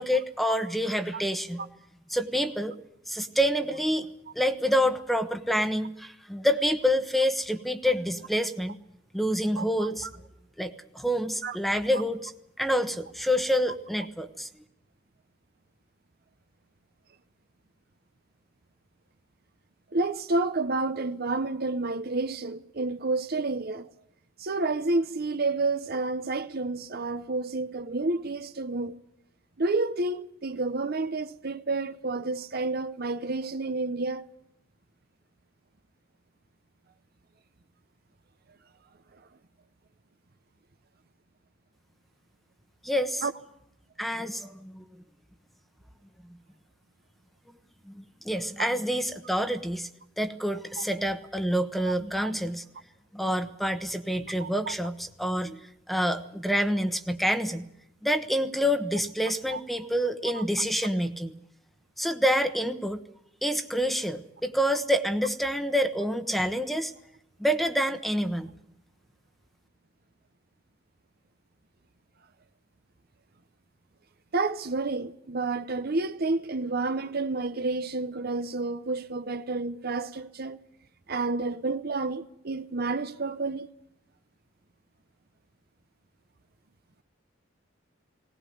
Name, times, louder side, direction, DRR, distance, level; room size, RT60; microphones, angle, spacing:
voice 1, 0.0-1.6 2.1-2.8 3.1-4.1 4.3-8.8 9.1-10.1 10.6-12.3 12.6-14.5 42.8-43.2 44.0-44.8 46.2-46.4 47.9-49.9 50.2-52.6 53.1-57.7 58.0-61.3 62.0-63.0 63.4-66.9 67.4-68.5, equal, ahead, 1.1 m, -27 dB
voice 2, 9.6-9.9 11.4-11.6 11.9-12.0 19.9-23.9 24.4-29.0 29.6-34.3 43.2-43.3 48.6-48.7 50.8-50.9 52.2-52.3 54.4-54.7 59.5-59.6 60.3-60.4 74.3-80.6 81.1-83.7, right 3 dB, 50° right, 0.8 m, -30 dB
19.5 x 19.0 x 9.4 m
head